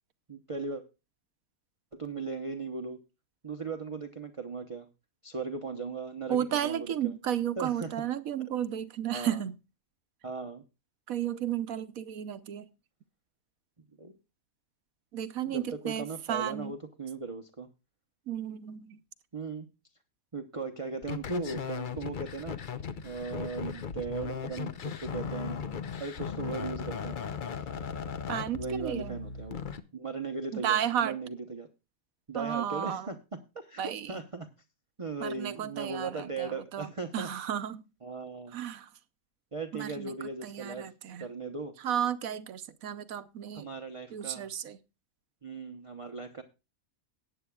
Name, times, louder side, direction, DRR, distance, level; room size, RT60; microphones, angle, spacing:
voice 1, 0.3-0.8 1.9-3.0 3.4-4.9 5.2-7.1 7.6-7.9 9.1-9.4 10.2-10.6 14.0-14.1 15.4-17.7 19.3-19.7 20.3-22.6 23.0-25.6 26.0-27.2 27.6-27.7 28.5-29.6 29.9-31.7 32.3-33.2 33.5-34.5 35.0-37.3 38.0-38.6 39.5-40.9 41.2-41.7 43.5-44.5 45.4-46.4, right 4 dB, 30° right, 0.8 m, -38 dB
voice 2, 6.3-9.6 11.1-12.7 15.1-16.7 18.3-19.0 28.3-29.2 30.5-31.2 32.3-33.1 33.8-34.2 35.2-37.9 38.5-38.9 39.7-40.1 40.4-41.3 41.8-43.7 44.1-44.8, right 10 dB, 75° right, 1.2 m, -33 dB
sound 1, 21.0-29.8, left 6 dB, 45° left, 0.7 m, -37 dB
18.5 x 9.1 x 2.3 m
omnidirectional pair, 1.5 m